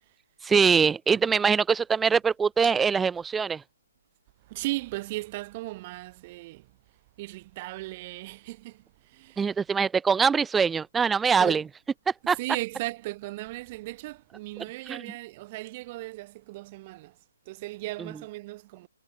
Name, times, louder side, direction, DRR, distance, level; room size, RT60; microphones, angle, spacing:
voice 1, 0.4-3.6 9.4-11.6 12.3-12.4 14.9-15.0, right 6 dB, 10° right, 0.4 m, -23 dB
voice 2, 4.4-6.7 7.2-9.6 11.4-11.7 12.3-17.2 17.4-18.9, right 20 dB, 35° right, 6.2 m, -37 dB
hypercardioid pair, 145°, 0 cm